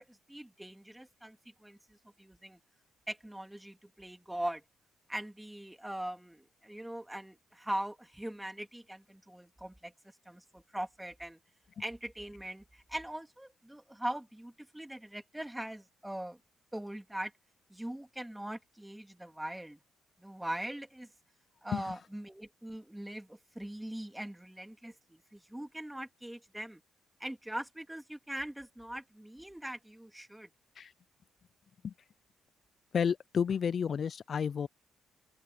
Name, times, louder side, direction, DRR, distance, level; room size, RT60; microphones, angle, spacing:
voice 1, 0.0-2.6 3.1-4.6 5.1-9.9 10.2-11.4 11.8-16.4 16.7-17.3 17.7-19.8 20.2-21.1 21.6-26.8 27.2-30.5, right 1 dB, 5° right, 3.2 m, -41 dB
voice 2, 32.9-34.7, left 7 dB, 50° left, 0.3 m, -31 dB
open air
cardioid pair, 90°, 0 cm